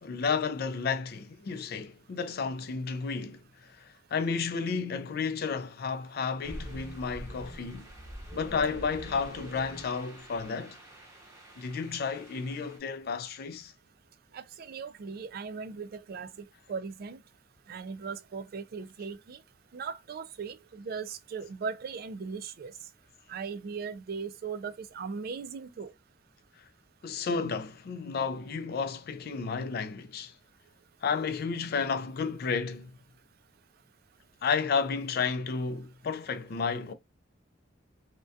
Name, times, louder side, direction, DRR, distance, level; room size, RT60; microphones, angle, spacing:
voice 1, 0.0-7.9 8.3-10.8 11.6-13.7 27.0-30.3 31.0-32.9 34.4-36.9, left 5 dB, 55° left, 0.4 m, -32 dB
sound 1, 6.4-12.8, right 1 dB, 15° right, 0.7 m, -45 dB
voice 2, 14.3-16.3 16.7-17.2 17.7-19.4 19.7-22.7 23.3-25.9, right 5 dB, 50° right, 0.3 m, -38 dB
2.2 x 2.2 x 2.6 m
head